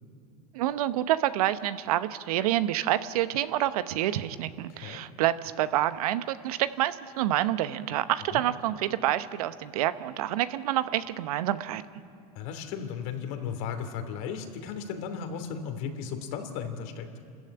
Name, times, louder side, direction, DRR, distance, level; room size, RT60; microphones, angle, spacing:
voice 1, 0.5-11.8, right 13 dB, 75° right, 13 dB, 0.9 m, -28 dB
voice 2, 12.3-17.1, left 7 dB, 65° left, 6 dB, 2.9 m, -35 dB
28.0 x 14.0 x 8.8 m, 2.5 s
hypercardioid pair, 90°, 19 cm